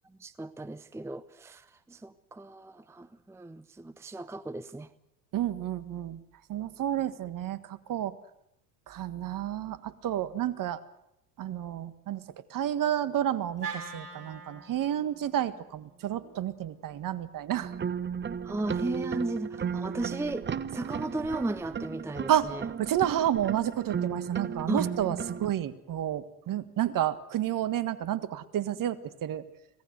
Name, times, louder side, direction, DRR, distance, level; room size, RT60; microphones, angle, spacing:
voice 1, 0.2-4.9 18.4-22.6 24.7-25.2, right 2 dB, 5° right, 14 dB, 0.8 m, -35 dB
voice 2, 5.3-6.2 6.5-8.1 8.9-10.8 11.4-12.2 12.5-17.7 22.3-22.5 22.8-29.4, right 11 dB, 45° right, 13 dB, 1.7 m, -30 dB
Wind instrument woodwind instrument, 13.6-17.9, right 4 dB, 85° right, 4.8 m, -45 dB
sound 1, 17.6-25.5, right 7 dB, 25° right, 1.1 m, -35 dB
26.0 x 17.5 x 8.0 m, 0.84 s
hypercardioid pair, 75°, 46 cm